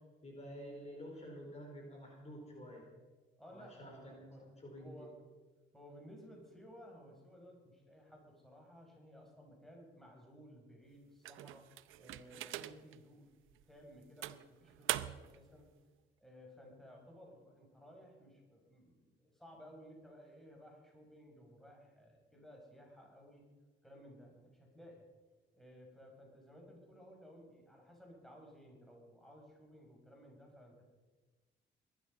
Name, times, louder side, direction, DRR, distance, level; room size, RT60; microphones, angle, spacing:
voice 1, 0.2-2.8 3.5-5.1, equal, 35° left, 0 dB, 4.6 m, -50 dB
voice 2, 3.4-4.4 4.8-5.1 5.7-11.7 12.0-13.4 13.7-15.7 16.2-23.5 23.8-25.1 25.5-30.8, equal, ahead, -1 dB, 6.0 m, -57 dB
sound 1, 11.2-13.0 13.5-13.6 14.2-15.4, right 14 dB, 85° right, 0.7 m, -42 dB
21.5 x 12.5 x 5.4 m, 1.3 s
cardioid pair, 90°, 20 cm